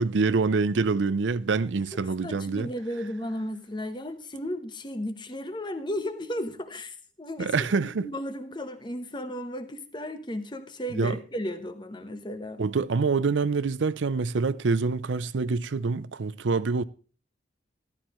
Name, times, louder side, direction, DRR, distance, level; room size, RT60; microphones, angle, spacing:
voice 1, 0.0-2.7 7.4-8.1 11.0-11.1 12.6-16.8, right 4 dB, 85° right, 0.5 m, -26 dB
voice 2, 2.2-7.7 8.0-12.6, equal, 25° left, 1.0 m, -34 dB
14.5 x 12.5 x 3.1 m
head